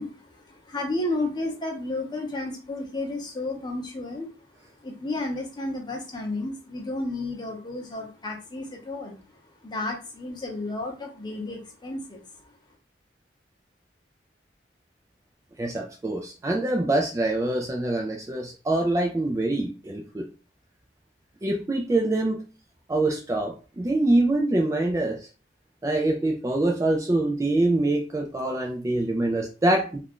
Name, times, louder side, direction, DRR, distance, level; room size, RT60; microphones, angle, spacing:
voice 1, 0.0-4.5 4.8-12.5, left 2 dB, 25° left, 1 dB, 0.7 m, -32 dB
voice 2, 15.6-20.3 21.4-22.4 22.9-25.3 25.8-30.0, right 2 dB, 20° right, 2 dB, 0.3 m, -25 dB
2.5 x 2.2 x 3.5 m, 0.35 s
head